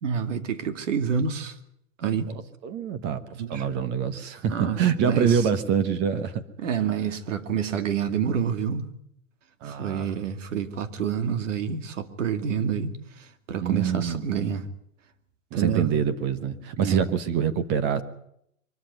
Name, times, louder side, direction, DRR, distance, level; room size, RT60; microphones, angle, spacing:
voice 1, 0.0-1.6 2.0-2.3 3.4-3.7 4.5-5.5 6.6-8.9 9.6-14.7 15.5-15.9 16.8-17.1, right 7 dB, 75° right, 2.5 m, -28 dB
voice 2, 2.3-6.4 9.6-10.1 13.6-14.2 15.5-18.0, right 7 dB, 30° right, 1.2 m, -26 dB
23.5 x 14.0 x 9.1 m
hypercardioid pair, 150°, 37 cm